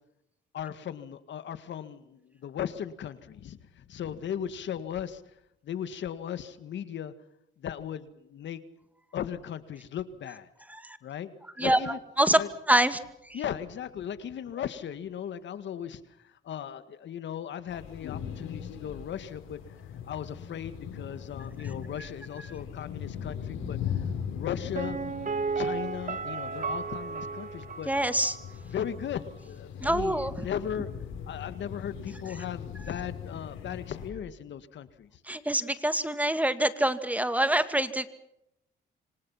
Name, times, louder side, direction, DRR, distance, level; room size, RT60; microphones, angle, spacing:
voice 1, 0.5-5.2 5.6-7.1 7.6-8.6 9.1-10.5 11.0-11.3 11.6-12.0 12.3-12.5 13.3-19.8 20.1-25.0 25.6-27.9 28.7-30.9 31.3-35.2, left 9 dB, 65° left, 12 dB, 1.8 m, -37 dB
voice 2, 12.7-13.0 13.3-13.4 27.9-28.4 29.8-30.3 35.3-38.1, right 1 dB, 5° right, 11 dB, 2.2 m, -25 dB
sound 1, 17.7-34.1, left 8 dB, 90° left, 6.6 m, -40 dB
Piano, 24.7-28.5 28.8-28.9, right 5 dB, 40° right, 2.1 m, -34 dB
27.0 x 25.0 x 5.8 m, 0.79 s
cardioid pair, 90°, 20 cm